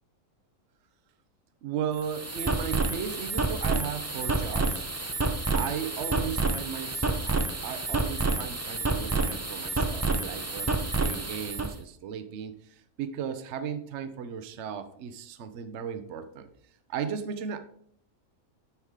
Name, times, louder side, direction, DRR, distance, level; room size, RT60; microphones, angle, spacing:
voice 1, 1.6-4.9 5.5-16.5 16.9-17.6, right 8 dB, 65° right, 10 dB, 1.0 m, -36 dB
sound 1, 1.9-11.7, right 3 dB, 25° right, 0.3 m, -29 dB
9.8 x 4.7 x 3.6 m, 0.64 s
omnidirectional pair, 1.4 m